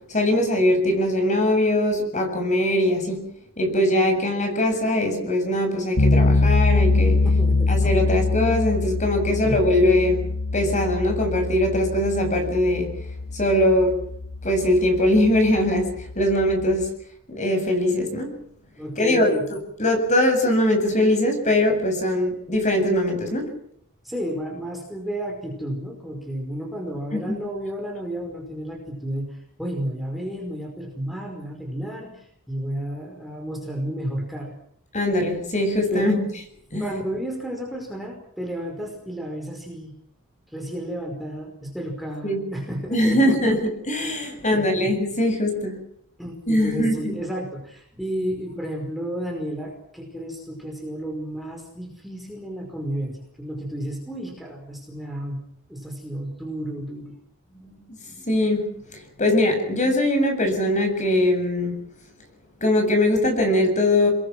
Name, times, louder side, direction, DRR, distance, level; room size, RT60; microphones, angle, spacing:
voice 1, 0.1-3.3 3.6-7.2 7.7-10.2 10.5-12.9 13.3-14.0 14.4-16.9 17.3-18.3 19.0-23.5 27.1-27.4 34.9-36.2 36.7-36.9 42.2-42.4 42.9-45.8 46.5-47.1 57.6-58.0 58.3-61.8 62.6-64.1, left 1 dB, 35° left, 5 dB, 7.7 m, -21 dB
sound 1, 6.0-16.9, left 3 dB, 85° left, 2.8 m, -24 dB
voice 2, 7.2-7.7 9.4-9.6 18.8-19.4 24.0-34.6 35.9-36.2 36.8-39.9 40.5-43.6 44.5-44.9 46.2-55.4 55.7-57.2, equal, ahead, 1 dB, 5.1 m, -32 dB
29.0 x 22.0 x 6.2 m, 0.67 s
head